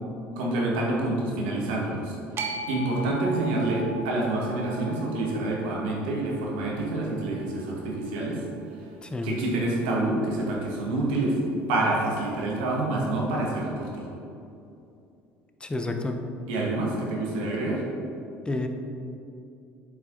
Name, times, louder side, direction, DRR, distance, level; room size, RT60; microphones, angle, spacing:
voice 1, 0.3-2.1 2.7-8.4 9.2-11.4 11.7-14.0 16.5-17.8, right 2 dB, 80° right, -3 dB, 1.7 m, -27 dB
sound 1, 2.4-8.6, right 2 dB, 45° right, 0.9 m, -39 dB
voice 2, 9.0-9.4 15.6-16.2 18.5-18.7, left 2 dB, 15° left, 5 dB, 0.8 m, -30 dB
7.8 x 5.6 x 3.9 m, 2.7 s
hypercardioid pair, 75°, 6 cm